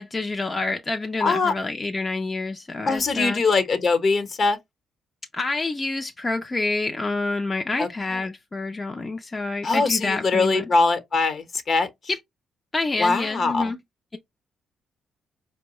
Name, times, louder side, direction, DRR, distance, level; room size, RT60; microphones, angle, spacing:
voice 1, 0.0-3.4 5.3-10.7 12.1-12.2 12.7-13.8, left 3 dB, 25° left, 0.5 m, -28 dB
voice 2, 1.2-1.5 2.9-4.6 7.8-7.9 9.6-11.9 13.0-13.7, left 3 dB, 55° left, 1.0 m, -22 dB
4.5 x 2.1 x 3.0 m
supercardioid pair, 70°, 0 cm